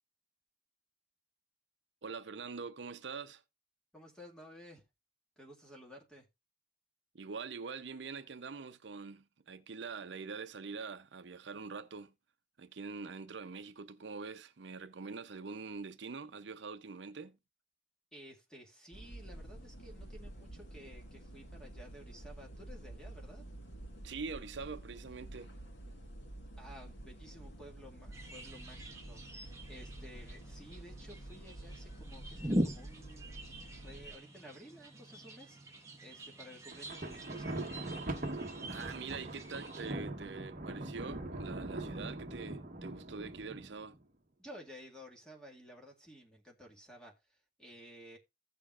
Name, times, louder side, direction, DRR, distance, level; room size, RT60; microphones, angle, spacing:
voice 1, 2.0-3.4 7.1-12.1 12.6-17.4 24.0-25.5 38.7-44.0, right 4 dB, 70° right, 0.6 m, -44 dB
voice 2, 3.9-4.8 5.4-6.3 18.1-23.5 26.6-33.4 33.7-35.6 36.0-37.7 44.4-48.2, equal, 5° left, 2.0 m, -54 dB
sound 1, 18.9-34.2, right 1 dB, 75° left, 1.9 m, -49 dB
sound 2, 28.1-39.9, equal, 15° right, 1.3 m, -43 dB
Thunder, 36.7-44.0, right 2 dB, 45° right, 1.2 m, -42 dB
15.5 x 6.8 x 2.4 m
head